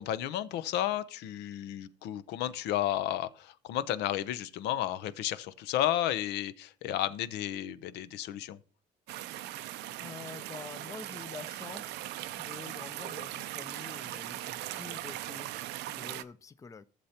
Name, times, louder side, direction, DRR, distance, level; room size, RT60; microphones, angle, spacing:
voice 1, 0.0-8.6, left 12 dB, 85° left, 0.6 m, -32 dB
sound 1, 9.1-16.2, right 14 dB, 85° right, 0.5 m, -39 dB
voice 2, 10.0-12.0 12.4-16.8, left 5 dB, 20° left, 0.4 m, -47 dB
14.5 x 6.7 x 2.8 m
cardioid pair, 110°, 17 cm